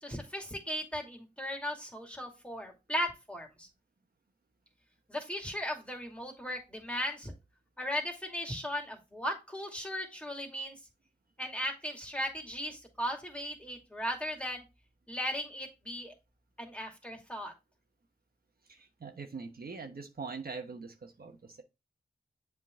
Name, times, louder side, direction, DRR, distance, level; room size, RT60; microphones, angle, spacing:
voice 1, 0.0-3.7 5.1-7.3 7.8-10.8 11.4-14.6 15.1-16.1 16.6-17.5, equal, 5° left, 2.5 m, -37 dB
voice 2, 18.7-21.6, right 4 dB, 55° right, 1.1 m, -43 dB
7.5 x 3.8 x 3.7 m
cardioid pair, 55°, 18 cm